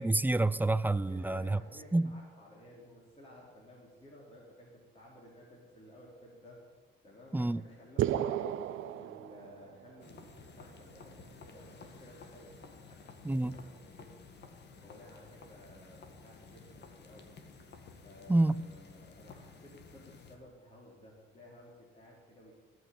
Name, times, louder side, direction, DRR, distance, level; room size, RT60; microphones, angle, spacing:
voice 1, 0.0-1.6 1.9-2.1 7.3-7.6 13.2-13.6 18.3-18.6, right 2 dB, 10° right, 0.4 m, -28 dB
voice 2, 1.1-6.6 7.0-8.5 9.0-13.7 14.0-14.1 14.7-17.3 18.0-22.5, left 1 dB, 30° left, 3.6 m, -55 dB
sound 1, 8.0-9.9, right 11 dB, 80° right, 0.6 m, -33 dB
sound 2, 10.0-20.4, left 4 dB, 60° left, 1.8 m, -53 dB
17.0 x 6.2 x 9.2 m
cardioid pair, 90°, 20 cm